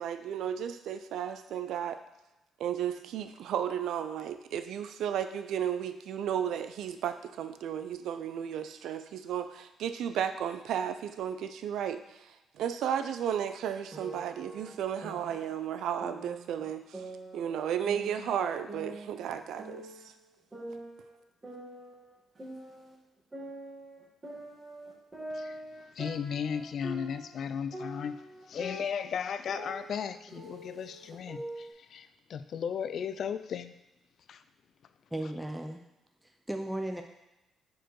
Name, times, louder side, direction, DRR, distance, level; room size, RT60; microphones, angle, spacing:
voice 1, 0.0-2.0 2.6-17.0 17.3-20.1, right 9 dB, 80° right, 10 dB, 0.4 m, -34 dB
sound 1, 13.9-15.6 16.0-17.6 17.8-20.1 20.5-23.0 23.3-27.4 27.7-31.7, right 1 dB, 20° right, 1.8 m, -44 dB
voice 2, 25.3-25.6 25.9-33.8 34.3-34.4, left 7 dB, 60° left, 11 dB, 0.3 m, -36 dB
voice 3, 35.1-35.8 36.2-37.0, right 1 dB, 5° right, 4 dB, 0.4 m, -36 dB
4.6 x 4.5 x 4.6 m, 0.97 s
cardioid pair, 90°, 0 cm